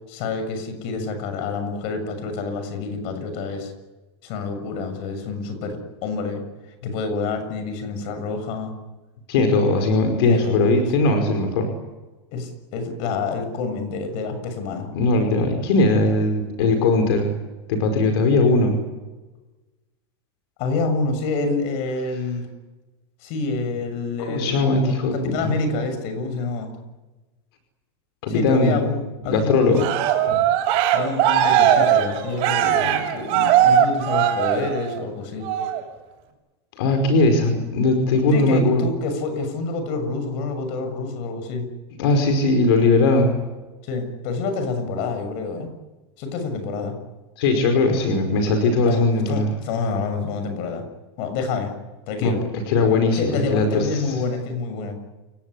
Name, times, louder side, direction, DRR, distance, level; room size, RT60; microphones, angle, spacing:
voice 1, 0.1-3.7 4.2-6.4 6.8-8.7 10.2-10.7 12.3-14.9 20.6-22.5 23.2-24.6 25.1-26.7 28.3-29.0 29.2-29.9 30.9-35.5 38.3-41.7 43.8-45.7 46.2-47.0 48.8-50.8 51.2-51.7 52.1-52.4 53.2-54.9, left 3 dB, 50° left, 8 dB, 6.9 m, -27 dB
voice 2, 9.3-11.7 14.9-17.3 17.7-18.8 24.3-25.5 28.2-28.9 29.2-29.8 30.3-30.4 36.8-38.9 42.0-43.4 47.4-49.5 52.2-52.3 52.7-54.1, left 2 dB, 70° left, 6 dB, 5.2 m, -19 dB
Cheering, 29.7-35.0 35.4-35.8, right 10 dB, 45° right, 6.7 m, -19 dB
29.0 x 18.0 x 10.0 m, 1.2 s
supercardioid pair, 160°, 14 cm